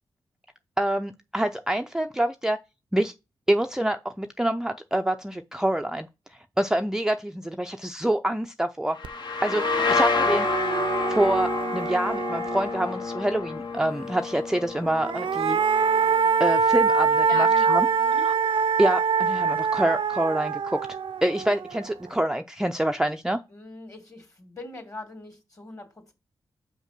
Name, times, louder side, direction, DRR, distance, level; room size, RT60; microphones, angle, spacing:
voice 1, 0.8-2.6 2.9-3.1 3.5-6.1 6.6-9.0 9.4-10.5 11.1-15.8 16.4-17.9 18.2-18.3 18.8-20.8 21.2-23.4, right 1 dB, 5° right, 0.5 m, -26 dB
sound 1, 9.0-16.5, left 4 dB, 55° left, 0.9 m, -29 dB
sound 2, 9.0-9.1 9.5-13.2 14.8-22.1, right 5 dB, 65° right, 0.5 m, -25 dB
voice 2, 17.2-18.2 23.5-26.1, left 2 dB, 35° left, 2.5 m, -40 dB
5.5 x 4.8 x 6.0 m
cardioid pair, 65°, 9 cm